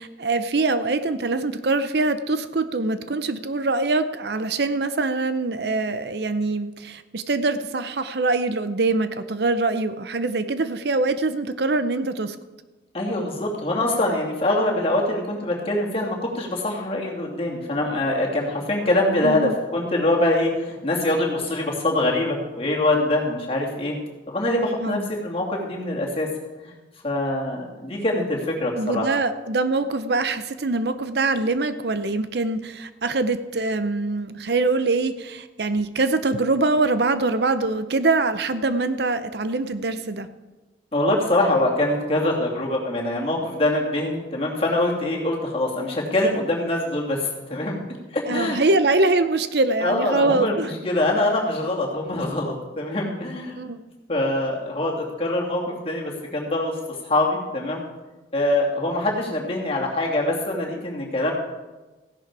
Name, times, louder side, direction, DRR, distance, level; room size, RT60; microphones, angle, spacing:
voice 1, 0.0-12.4 19.2-19.5 24.8-25.1 28.8-40.3 48.3-50.7 53.6-53.8, right 3 dB, 60° right, 12 dB, 0.7 m, -23 dB
voice 2, 12.9-24.0 24.3-26.3 26.6-26.7 27.0-29.1 40.9-47.8 48.1-48.6 49.8-53.6 54.1-56.8 57.0-57.8 58.3-61.3, left 1 dB, 30° left, -1 dB, 2.6 m, -24 dB
15.5 x 11.0 x 4.7 m, 1.2 s
head